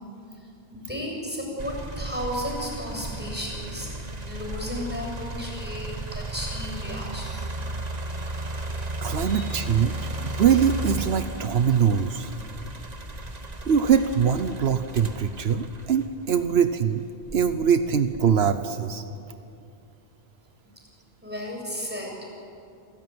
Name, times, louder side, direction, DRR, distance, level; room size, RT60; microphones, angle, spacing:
voice 1, 0.3-3.9 4.2-7.7 9.2-9.4 21.2-22.1, left 1 dB, 10° right, 0 dB, 7.3 m, -34 dB
sound 1, 1.6-16.6 17.2-18.4, right 2 dB, 40° right, 1.6 m, -34 dB
voice 2, 9.0-12.3 13.7-17.0 17.3-19.0, right 7 dB, 80° right, 10 dB, 1.1 m, -23 dB
28.0 x 16.5 x 9.5 m, 2.6 s
omnidirectional pair, 1.0 m